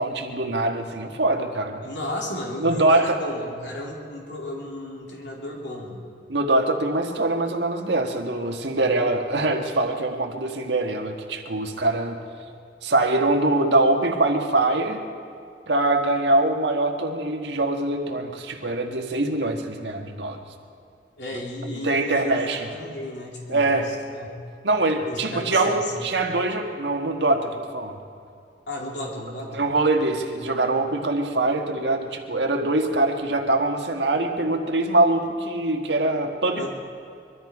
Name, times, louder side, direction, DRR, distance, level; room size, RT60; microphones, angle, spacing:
voice 1, 0.0-1.8 2.6-3.2 6.3-12.2 12.8-15.0 15.7-20.4 21.8-22.7 23.5-23.9 24.6-28.0 29.5-36.7, right 2 dB, 80° right, 3 dB, 1.6 m, -23 dB
voice 2, 1.8-6.1 21.2-24.3 25.0-26.2 28.7-29.6 36.5-36.7, left 1 dB, 85° left, -2 dB, 2.6 m, -34 dB
22.5 x 13.5 x 4.8 m, 2.4 s
head